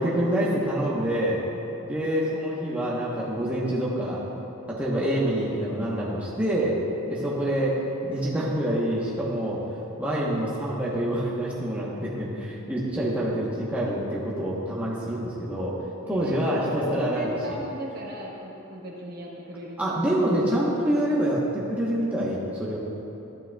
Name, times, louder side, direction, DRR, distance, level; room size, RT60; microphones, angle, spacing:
voice 1, 0.0-1.4 1.8-4.2 4.7-6.8 7.1-9.6 10.0-15.7 16.1-17.6 19.8-22.8, right 1 dB, 5° right, -7 dB, 0.9 m, -26 dB
voice 2, 16.0-19.8 20.1-20.2, equal, 45° right, -3 dB, 1.1 m, -36 dB
12.0 x 9.0 x 2.3 m, 3.0 s
head